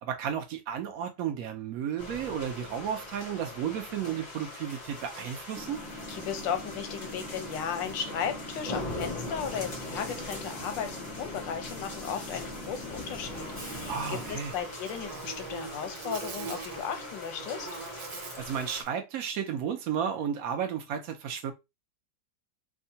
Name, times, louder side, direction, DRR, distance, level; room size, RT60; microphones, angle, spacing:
voice 1, 0.0-5.8 13.9-14.5 18.4-21.5, right 8 dB, 70° right, 0.8 m, -33 dB
sound 1, 2.0-18.8, left 2 dB, 55° left, 0.4 m, -41 dB
Train / Subway metro underground, 5.5-14.3, left 1 dB, 5° right, 0.8 m, -43 dB
voice 2, 6.1-17.7, left 8 dB, 90° left, 1.4 m, -35 dB
Buzz, 13.3-18.9, right 5 dB, 85° right, 1.4 m, -43 dB
3.6 x 2.2 x 2.7 m
omnidirectional pair, 1.9 m